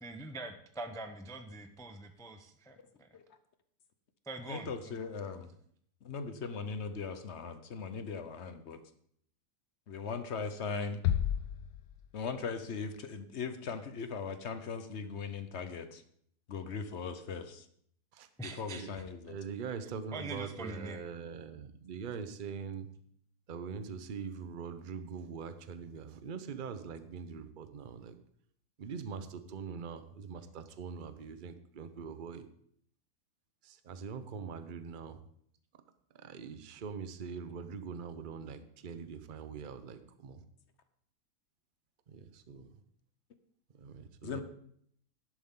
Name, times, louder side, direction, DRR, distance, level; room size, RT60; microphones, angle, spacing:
voice 1, 0.0-3.1 4.3-4.9 18.4-18.8 20.1-21.0, right 2 dB, 5° left, 7 dB, 0.3 m, -44 dB
voice 2, 4.5-5.5 6.0-8.8 9.9-11.0 12.1-16.0 16.5-17.7 18.4-19.4 44.2-44.4, left 5 dB, 50° left, 10 dB, 1.0 m, -39 dB
sound 1, 11.0-12.7, left 11 dB, 75° left, 1.2 m, -33 dB
voice 3, 19.2-22.9 23.5-28.2 28.8-32.4 33.6-35.2 36.1-40.4 42.1-42.7 43.7-44.4, right 6 dB, 45° right, 10 dB, 0.7 m, -43 dB
11.5 x 11.0 x 3.8 m, 0.66 s
omnidirectional pair, 1.7 m